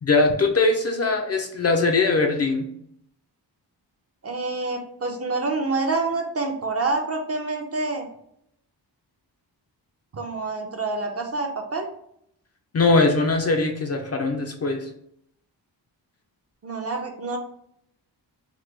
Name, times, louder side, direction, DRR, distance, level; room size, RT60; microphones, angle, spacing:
voice 1, 0.0-2.7 12.7-14.9, left 3 dB, 40° left, 3 dB, 0.4 m, -21 dB
voice 2, 4.2-8.1 10.1-11.9 16.6-17.4, right 3 dB, 35° right, 3 dB, 0.5 m, -27 dB
3.0 x 2.2 x 3.2 m, 0.73 s
wide cardioid pair, 105°, 43 cm